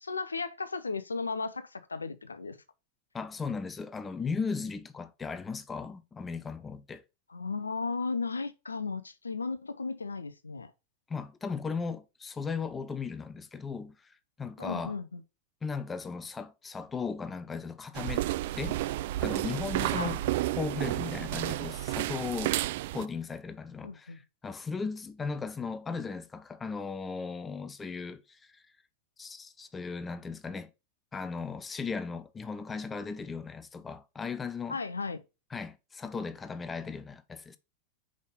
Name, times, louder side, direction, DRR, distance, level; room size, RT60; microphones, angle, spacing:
voice 1, 0.0-2.6 7.3-10.7 14.6-15.2 19.9-20.2 23.8-24.2 34.7-35.2, left 4 dB, 75° left, 0.6 m, -35 dB
voice 2, 3.1-7.0 11.1-15.0 15.6-18.3 18.6-18.8 19.2-20.2 20.6-22.6 22.9-28.6 29.2-30.7 31.1-34.8 35.5-37.6, left 5 dB, 15° left, 0.7 m, -37 dB
sound 1, 17.9-23.0, right 15 dB, 50° right, 0.3 m, -31 dB
5.4 x 5.0 x 5.4 m
figure-of-eight pair, 90°, 0 cm